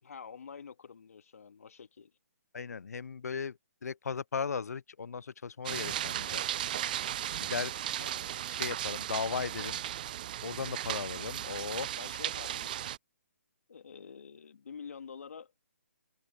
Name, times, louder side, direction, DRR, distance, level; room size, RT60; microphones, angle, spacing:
voice 1, 0.0-2.1 8.0-8.3 12.0-12.9 13.7-15.5, left 6 dB, 70° left, 1.9 m, -47 dB
voice 2, 2.5-6.4 7.4-7.7 8.5-9.8 10.4-11.9, left 5 dB, 85° left, 0.5 m, -37 dB
sound 1, 5.7-13.0, right 12 dB, 35° right, 0.4 m, -36 dB
hypercardioid pair, 160°, 8 cm